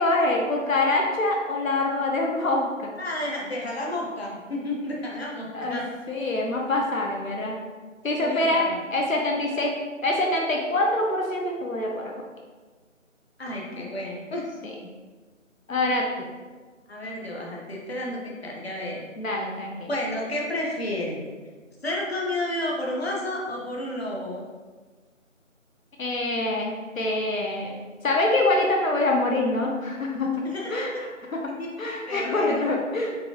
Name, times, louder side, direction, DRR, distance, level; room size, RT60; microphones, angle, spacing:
voice 1, 0.0-2.9 5.5-5.8 6.1-7.6 8.0-9.7 10.0-12.1 13.8-13.9 14.6-14.7 15.7-16.3 19.2-19.9 26.0-27.7 28.0-30.3 30.7-30.9 31.3-31.4 31.8-33.2, left 2 dB, 85° left, 0 dB, 0.9 m, -25 dB
voice 2, 3.0-5.9 8.2-8.8 13.4-14.5 16.9-19.0 19.9-21.3 21.8-24.4 30.4-31.0 31.6-32.6, left 1 dB, 50° left, -2 dB, 1.0 m, -31 dB
5.2 x 3.4 x 2.9 m, 1.4 s
figure-of-eight pair, 170°, 39 cm